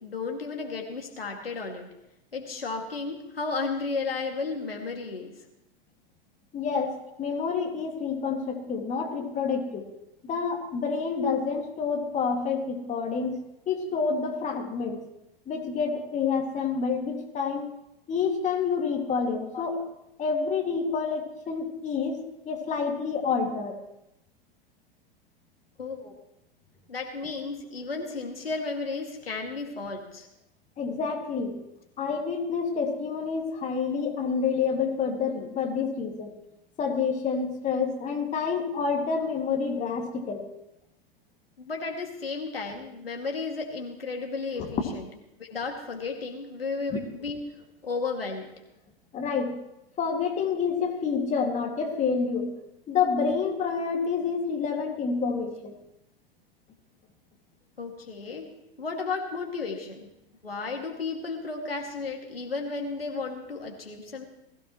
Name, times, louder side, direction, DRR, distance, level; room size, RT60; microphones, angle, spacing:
voice 1, 0.0-1.9 2.3-5.4 19.5-19.8 25.8-26.1 26.9-30.3 41.6-45.0 45.4-47.4 47.8-48.6 57.8-58.5 58.8-60.1 60.4-64.3, left 4 dB, 75° left, 2 dB, 2.4 m, -33 dB
voice 2, 6.5-9.9 10.2-13.4 13.7-15.0 15.5-17.7 18.1-19.8 20.2-23.8 30.8-31.6 32.0-36.3 36.8-40.5 44.6-44.7 46.9-47.0 49.1-49.6 50.0-52.5 52.9-55.8, left 5 dB, 25° left, 2 dB, 2.4 m, -28 dB
20.0 x 16.0 x 3.2 m, 0.87 s
figure-of-eight pair, 90°, 29 cm